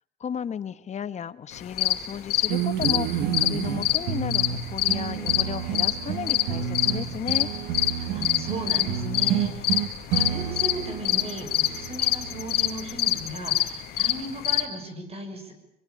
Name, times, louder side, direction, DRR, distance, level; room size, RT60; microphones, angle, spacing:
voice 1, 0.2-7.5, left 8 dB, 40° left, 15 dB, 1.3 m, -34 dB
sound 1, 1.5-14.6, left 13 dB, 70° left, 2.4 m, -25 dB
sound 2, 2.5-13.1, right 9 dB, 90° right, 1.6 m, -30 dB
voice 2, 8.0-9.8 10.1-15.5, right 1 dB, 35° right, 7 dB, 6.5 m, -36 dB
23.5 x 23.5 x 8.6 m, 0.76 s
cardioid pair, 110°, 17 cm